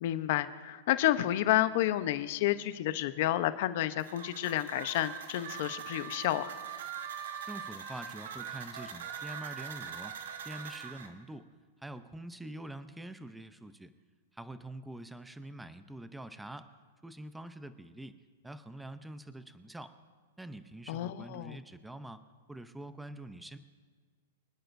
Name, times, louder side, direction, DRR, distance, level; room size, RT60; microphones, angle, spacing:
voice 1, 0.0-6.5 20.9-21.6, left 14 dB, 55° left, 12 dB, 0.8 m, -30 dB
sound 1, 4.0-11.1, right 6 dB, 85° right, 1.6 m, -46 dB
Harmonica, 4.4-11.0, right 9 dB, 55° right, 1.0 m, -44 dB
voice 2, 7.4-11.5 11.8-13.9 14.3-16.7 17.0-18.2 18.4-19.9 20.4-22.2 22.5-23.6, right 1 dB, 5° right, 11 dB, 0.6 m, -45 dB
25.0 x 10.0 x 2.6 m, 1.5 s
hypercardioid pair, 145°, 0 cm